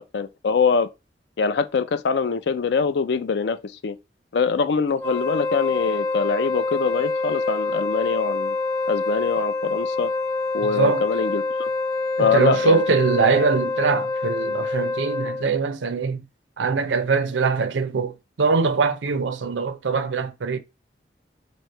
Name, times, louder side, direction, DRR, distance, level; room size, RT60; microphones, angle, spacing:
voice 1, 0.1-0.9 1.4-4.0 4.3-8.6 8.9-10.1 10.5-11.7 12.2-12.8, left 5 dB, 70° left, 0.4 m, -23 dB
Wind instrument woodwind instrument, 4.9-15.5, left 3 dB, 15° left, 0.7 m, -26 dB
voice 2, 10.6-11.1 12.2-16.2 16.6-20.6, right 4 dB, 90° right, 0.5 m, -22 dB
3.1 x 2.7 x 4.4 m
head